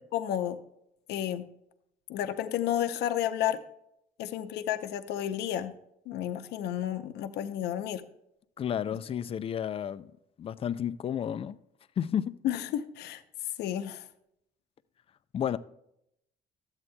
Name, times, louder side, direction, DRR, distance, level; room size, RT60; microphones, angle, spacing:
voice 1, 0.1-0.6 1.1-1.5 2.1-3.6 4.2-5.7 6.1-8.0 12.4-13.2 13.6-14.1, left 11 dB, 80° left, 0.6 m, -31 dB
voice 2, 8.6-10.1 10.4-11.6 12.0-12.3 15.3-15.6, left 9 dB, 35° left, 0.4 m, -31 dB
12.5 x 8.0 x 2.2 m
cardioid pair, 110°, 17 cm